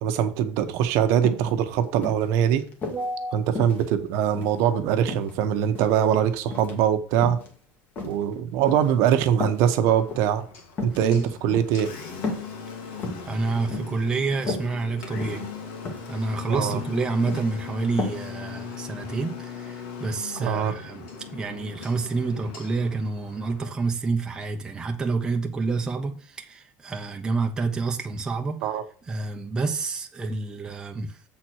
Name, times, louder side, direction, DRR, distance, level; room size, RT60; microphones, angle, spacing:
voice 1, 0.0-2.6 3.3-7.4 8.0-10.4 10.8-11.9 16.5-16.8 20.4-20.8 28.6-28.8, right 9 dB, 60° right, 1.0 m, -22 dB
sound 1, 0.8-0.9 1.2-1.5 2.0-3.1 3.5-4.6 5.1-6.0 6.5-6.8 7.1-7.5 8.0-8.9 9.4-9.6 10.0-10.3 10.7-11.0 11.5-11.8 12.2-12.5 12.8-13.3 13.7-14.0 14.3-14.7 15.2-15.5 15.8-16.1 16.5-16.8 17.1-17.5 18.0-18.2 18.5-18.6, left 3 dB, 30° left, 1.8 m, -33 dB
voice 2, 2.9-3.4 11.0-11.2 13.3-15.5 16.1-21.1 21.3-28.7 29.1-31.2, right 3 dB, 15° right, 0.8 m, -28 dB
Engine, 9.7-23.7, left 6 dB, 80° left, 2.6 m, -39 dB
7.5 x 4.4 x 6.2 m
cardioid pair, 160°, 6 cm